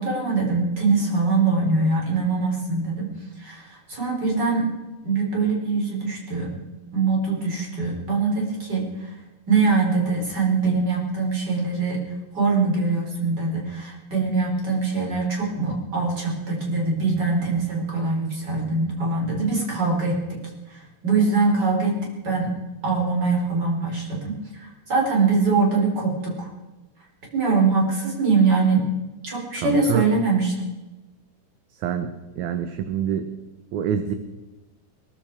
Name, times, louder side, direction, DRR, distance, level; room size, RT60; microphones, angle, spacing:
voice 1, 0.0-3.1 3.4-4.7 5.0-6.5 6.9-9.1 9.5-12.0 12.3-20.4 20.7-22.0 22.2-22.5 22.8-26.5 27.3-28.8 29.2-30.5, right 4 dB, 30° right, -1 dB, 5.0 m, -23 dB
voice 2, 29.6-30.1 31.8-32.1 32.4-33.3 33.7-34.1, right 9 dB, 70° right, 8 dB, 2.1 m, -26 dB
21.5 x 13.0 x 4.8 m, 1.1 s
omnidirectional pair, 3.9 m